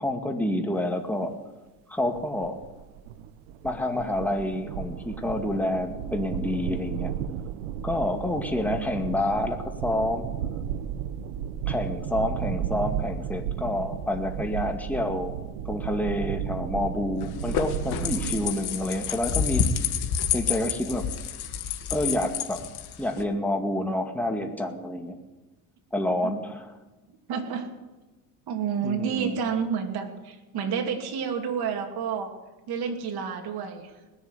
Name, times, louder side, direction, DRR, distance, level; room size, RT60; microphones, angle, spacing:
voice 1, 0.0-1.3 1.9-2.6 3.6-7.1 7.8-10.3 11.7-15.3 15.7-19.7 20.3-21.1 21.9-22.6 23.0-25.2 25.9-26.7 28.8-29.4, left 1 dB, 5° left, 4 dB, 2.1 m, -28 dB
sound 1, 2.1-18.5, right 9 dB, 80° right, 1.1 m, -33 dB
sound 2, 17.2-23.2, left 8 dB, 60° left, 1.7 m, -29 dB
voice 2, 27.3-27.7 28.5-32.3 32.7-33.9, right 7 dB, 55° right, 3 dB, 2.9 m, -29 dB
20.0 x 7.1 x 9.7 m, 1.2 s
supercardioid pair, 100°, 45 cm